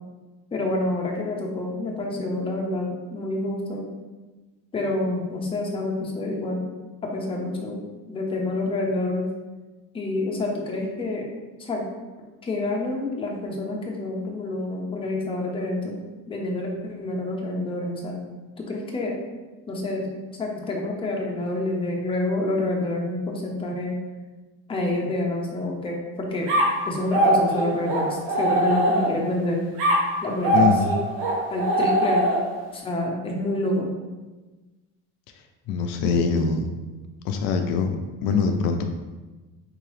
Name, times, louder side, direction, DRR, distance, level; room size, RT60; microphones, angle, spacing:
voice 1, 0.5-3.8 4.7-6.7 7.0-7.8 8.1-9.3 9.9-11.3 11.6-11.8 12.4-16.0 16.3-18.2 18.6-19.2 19.7-20.1 20.4-24.0 24.7-26.5 26.9-29.6 30.2-30.8 31.5-32.2 32.7-33.9, left 2 dB, 15° left, -1 dB, 0.6 m, -27 dB
sound 1, 26.5-29.3 29.8-32.7, right 1 dB, 85° right, 1.2 m, -22 dB
voice 2, 30.5-30.9 35.7-36.7 37.2-37.9 38.2-38.8, left 5 dB, 75° left, 5 dB, 0.5 m, -23 dB
3.9 x 2.8 x 3.1 m, 1.2 s
cardioid pair, 140°, 34 cm